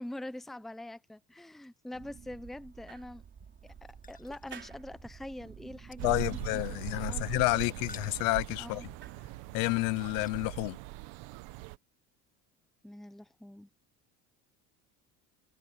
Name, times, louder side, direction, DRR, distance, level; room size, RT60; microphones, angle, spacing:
voice 1, 0.0-3.2 3.6-6.6 6.9-7.2 7.5-7.7 8.6-8.9 12.8-13.7, left 1 dB, ahead, 0.7 m, -44 dB
sound 1, 1.9-9.3, right 7 dB, 35° right, 3.8 m, -51 dB
sound 2, 3.2-10.5, left 4 dB, 25° left, 1.8 m, -58 dB
voice 2, 6.0-8.8 9.5-10.8, left 24 dB, 85° left, 0.9 m, -30 dB
sound 3, 6.0-11.8, right 21 dB, 85° right, 1.2 m, -41 dB
cardioid pair, 130°, 35 cm